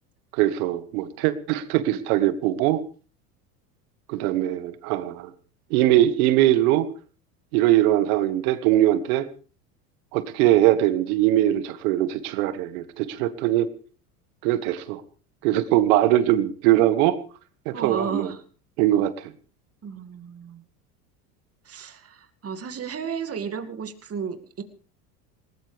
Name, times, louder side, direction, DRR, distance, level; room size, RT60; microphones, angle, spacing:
voice 1, 0.3-2.8 4.1-5.3 5.7-6.9 7.5-9.3 10.1-13.7 14.4-15.0 15.4-17.2 17.6-18.3 18.8-19.3, right 13 dB, 65° right, 13 dB, 1.6 m, -21 dB
voice 2, 17.7-18.4 19.8-20.6 21.6-24.6, right 6 dB, 30° right, 7 dB, 2.3 m, -33 dB
19.5 x 19.5 x 3.5 m, 0.36 s
hypercardioid pair, 90°, 46 cm